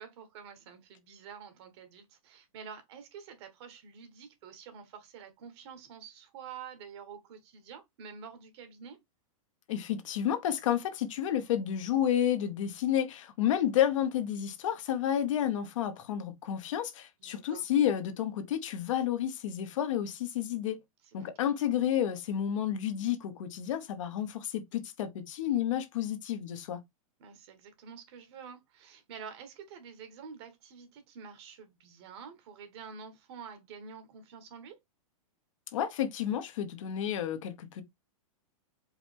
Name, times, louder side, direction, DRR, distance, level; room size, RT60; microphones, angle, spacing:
voice 1, 0.0-9.0 17.2-17.7 21.0-21.3 27.2-34.8, right 6 dB, 50° right, 1.4 m, -48 dB
voice 2, 9.7-20.8 21.1-26.8 35.7-37.8, left 10 dB, 65° left, 0.9 m, -30 dB
4.8 x 3.1 x 3.4 m
hypercardioid pair, 155°, 18 cm